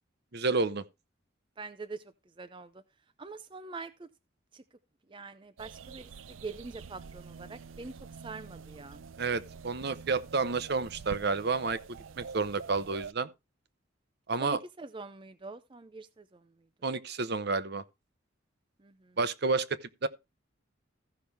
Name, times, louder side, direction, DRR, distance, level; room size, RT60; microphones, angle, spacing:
voice 1, 0.3-0.8 9.2-13.3 14.3-14.6 16.8-17.8 19.2-20.1, right 4 dB, 55° right, 0.8 m, -30 dB
voice 2, 1.6-2.0 2.4-2.8 3.2-4.1 4.5-4.6 5.1-9.0 14.4-16.5 18.8-19.2, right 3 dB, 25° right, 0.5 m, -44 dB
sound 1, 5.6-13.1, right 5 dB, 85° right, 0.5 m, -47 dB
15.5 x 5.9 x 3.4 m
head